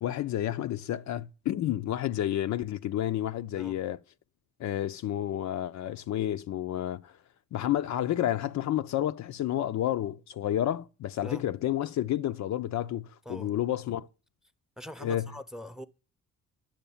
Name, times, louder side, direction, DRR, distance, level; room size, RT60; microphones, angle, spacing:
voice 1, 0.0-4.0 4.6-7.1 7.5-14.1 15.0-15.3, left 12 dB, 65° left, 0.6 m, -30 dB
voice 2, 14.8-15.9, equal, ahead, 0.8 m, -42 dB
10.0 x 6.6 x 7.1 m
cardioid pair, 90°, 30 cm